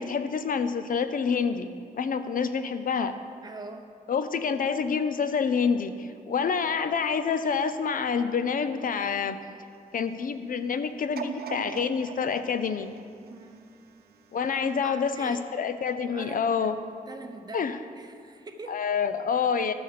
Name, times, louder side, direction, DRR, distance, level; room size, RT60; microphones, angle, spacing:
voice 1, 0.0-3.1 4.1-9.4 9.9-12.9 14.3-16.8 17.5-17.8 18.7-19.7, left 6 dB, 65° left, 10 dB, 0.6 m, -27 dB
voice 2, 3.4-3.9 13.3-13.7 14.6-15.4 16.0-18.8, right 2 dB, 25° right, 4 dB, 0.9 m, -43 dB
sound 1, 11.2-14.2 14.8-14.9, right 6 dB, 90° right, 0.7 m, -40 dB
12.5 x 6.4 x 6.9 m, 2.3 s
wide cardioid pair, 125°, 15 cm